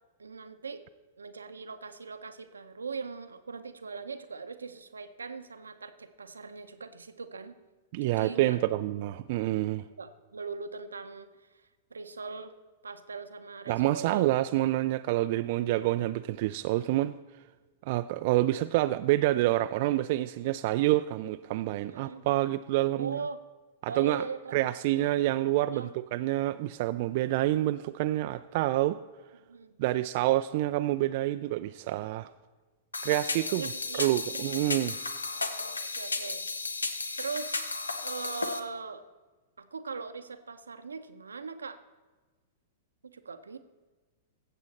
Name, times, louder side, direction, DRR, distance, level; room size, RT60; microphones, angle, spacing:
voice 1, 0.2-0.8 1.2-7.6 8.0-8.6 10.0-11.3 11.9-12.5 12.8-14.7 21.9-22.2 22.9-23.4 23.9-24.6 24.9-25.2 25.7-25.9 29.5-29.8 33.5-34.6 35.5-36.4 37.2-39.0 39.6-41.8 43.0-43.6, right 4 dB, 85° right, 10 dB, 0.7 m, -40 dB
voice 2, 7.9-9.8 13.7-17.1 17.9-23.2 23.8-24.2 24.5-29.0 29.8-32.3 33.0-33.7 34.0-35.0, right 16 dB, 55° right, 10 dB, 0.3 m, -27 dB
sound 1, 32.9-38.6, left 3 dB, 90° left, 0.7 m, -34 dB
16.0 x 7.3 x 4.1 m, 1.3 s
hypercardioid pair, 105°, 0 cm